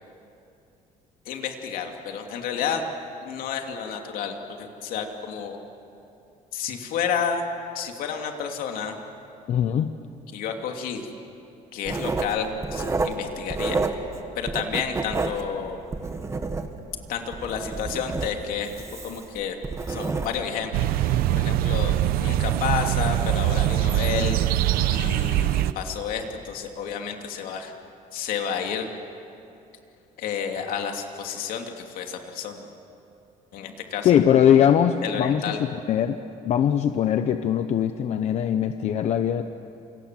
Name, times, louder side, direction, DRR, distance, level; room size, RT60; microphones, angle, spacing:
voice 1, 1.3-2.8 3.2-5.6 6.5-7.4 7.7-8.9 10.3-11.1 11.7-13.8 14.3-15.8 17.1-18.7 19.0-19.6 19.9-24.4 24.9-27.7 28.1-28.9 30.2-32.6 33.5-34.2 35.0-35.6, left 7 dB, 70° left, 3 dB, 2.9 m, -30 dB
voice 2, 9.5-9.9 34.0-36.2 36.4-39.4, left 9 dB, 50° left, 9 dB, 0.8 m, -21 dB
Writing, 11.8-14.2 14.5-16.9 17.3-20.6 21.0-21.3, right 3 dB, 20° right, 1.5 m, -29 dB
sound 1, 20.7-25.7, right 13 dB, 85° right, 0.9 m, -23 dB
28.0 x 27.0 x 7.7 m, 2.8 s
cardioid pair, 160°, 15 cm